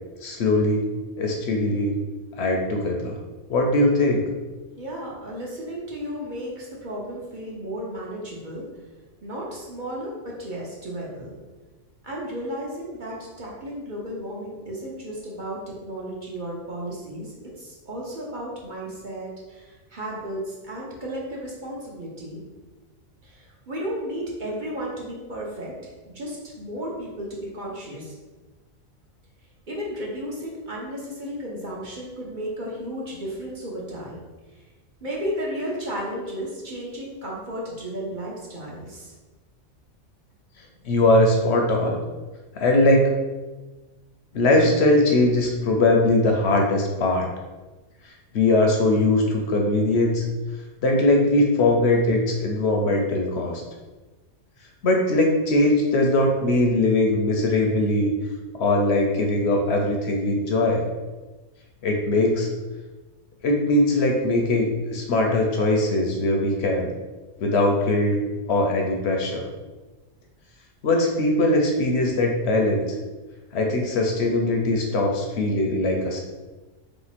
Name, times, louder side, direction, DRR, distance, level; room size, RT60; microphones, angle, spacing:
voice 1, 0.2-0.9 1.2-2.0 2.4-3.2 3.5-4.3 40.8-42.0 42.6-43.2 44.3-47.3 48.3-50.2 50.8-53.6 54.8-58.1 58.6-60.9 61.8-62.5 63.4-66.9 67.4-68.2 68.5-69.4 70.8-72.8 73.5-76.2, left 2 dB, 65° left, 1 dB, 0.8 m, -21 dB
voice 2, 4.8-8.6 9.2-11.3 12.0-22.4 23.2-25.8 26.1-28.2 29.7-34.2 34.5-34.7 35.0-39.1, equal, 45° right, -4 dB, 0.9 m, -34 dB
3.4 x 2.9 x 4.1 m, 1.2 s
omnidirectional pair, 1.3 m